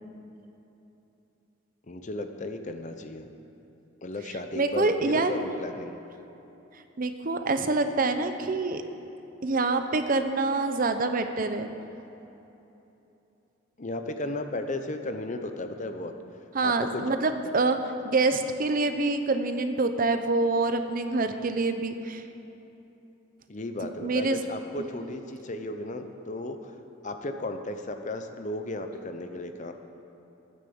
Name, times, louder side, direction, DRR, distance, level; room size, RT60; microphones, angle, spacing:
voice 1, 1.9-3.3 4.0-6.0 13.8-16.1 16.6-17.1 23.5-26.7 27.0-29.7, left 2 dB, 40° left, 7 dB, 0.8 m, -34 dB
voice 2, 4.6-5.3 7.0-8.8 9.4-11.7 16.5-17.8 18.0-22.2 24.0-24.4, right 3 dB, 45° right, 8 dB, 0.7 m, -26 dB
14.5 x 9.4 x 7.0 m, 3.0 s
head